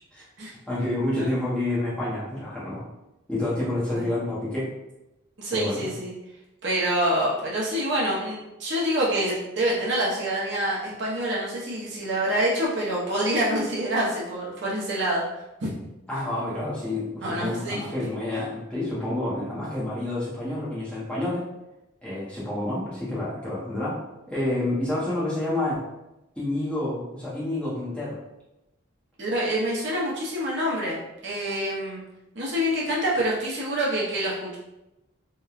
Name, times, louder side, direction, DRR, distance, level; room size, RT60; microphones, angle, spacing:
voice 1, 0.7-2.8 3.3-4.7 5.5-5.9 16.1-21.5 22.0-24.0 24.3-25.9 26.4-28.2, left 1 dB, 5° left, -9 dB, 0.6 m, -29 dB
voice 2, 5.4-6.1 6.6-15.2 15.6-15.7 17.2-17.9 29.2-31.0 31.2-32.0 32.3-34.6, right 1 dB, 55° right, -5 dB, 0.7 m, -26 dB
2.9 x 2.1 x 2.3 m, 0.95 s
head